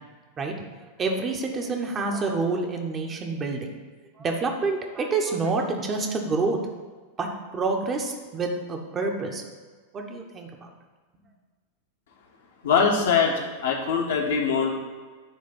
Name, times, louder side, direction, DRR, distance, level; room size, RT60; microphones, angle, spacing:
voice 1, 1.0-3.7 4.2-6.6 7.2-9.4 9.9-10.7, right 3 dB, 25° right, 2 dB, 1.1 m, -27 dB
voice 2, 12.6-14.7, left 5 dB, 60° left, 0 dB, 1.4 m, -22 dB
10.0 x 3.4 x 6.9 m, 1.4 s
figure-of-eight pair, 90°, 0 cm